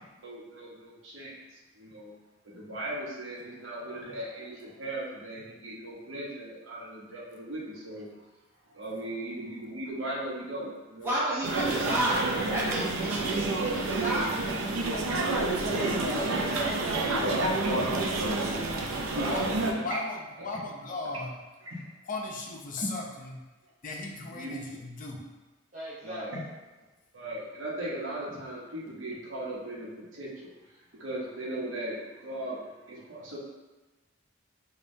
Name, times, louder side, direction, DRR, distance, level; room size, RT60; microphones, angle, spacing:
voice 1, 0.2-1.4 1.7-2.1 2.4-8.1 8.7-11.1 11.5-11.9 12.2-12.4 16.1-16.3 17.6-17.8 19.1-19.4 19.7-19.8 21.7-21.9 22.8-22.9 24.3-24.5 26.0-26.4 27.1-30.5 31.0-32.6 32.9-33.4, right 1 dB, 70° right, -6 dB, 0.9 m, -38 dB
voice 2, 11.0-14.4, right 1 dB, 10° right, -9 dB, 0.8 m, -31 dB
Ambience Bank Kookmin Bank, 11.4-19.7, right 2 dB, 85° right, 0.5 m, -29 dB
voice 3, 15.9-18.1 25.7-26.4, equal, 40° right, -9 dB, 0.7 m, -42 dB
voice 4, 19.1-21.4 22.1-23.4 23.8-25.3, left 2 dB, 40° left, 0 dB, 0.5 m, -37 dB
5.2 x 2.3 x 2.6 m, 1.2 s
head